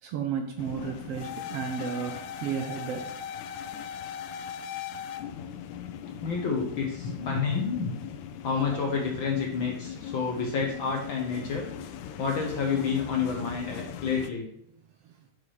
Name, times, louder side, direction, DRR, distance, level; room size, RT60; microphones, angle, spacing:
voice 1, 0.0-3.1 15.0-15.2, right 7 dB, 75° right, 1.4 m, -33 dB
sound 1, 0.6-14.3, left 8 dB, 80° left, 2.0 m, -39 dB
voice 2, 6.2-7.9 8.4-11.7 12.2-14.5, left 5 dB, 65° left, 1.2 m, -29 dB
6.5 x 5.8 x 4.8 m
omnidirectional pair, 3.4 m